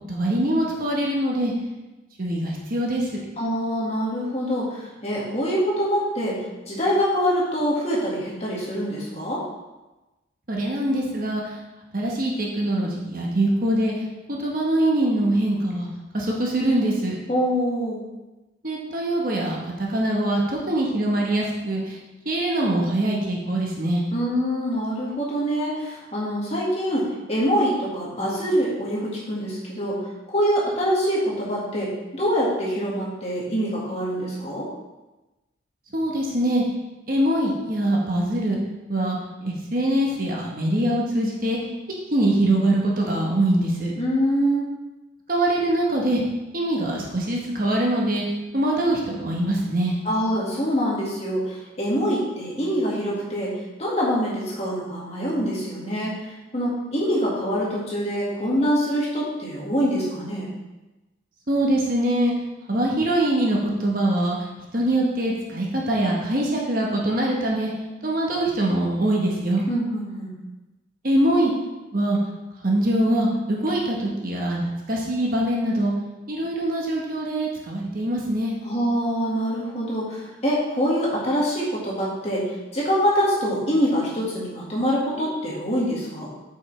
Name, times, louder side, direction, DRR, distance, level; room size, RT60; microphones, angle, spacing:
voice 1, 0.1-1.5 2.2-3.2 10.5-11.4 11.9-13.9 14.3-15.9 16.1-17.1 18.6-22.0 22.2-24.0 35.9-36.6 37.1-38.6 38.9-41.6 42.1-43.9 45.3-46.2 46.5-48.2 48.5-49.9 61.5-62.3 62.7-64.4 64.7-67.7 68.0-69.6 71.0-71.5 71.9-72.2 72.6-75.9 76.3-78.5, right 1 dB, 45° right, -2 dB, 1.3 m, -23 dB
voice 2, 3.4-9.4 17.3-18.0 24.1-34.7 44.0-44.7 50.0-53.5 53.8-56.1 56.5-60.5 69.7-70.3 78.6-86.3, equal, 35° left, -5 dB, 1.9 m, -25 dB
8.4 x 5.4 x 3.3 m, 1.1 s
head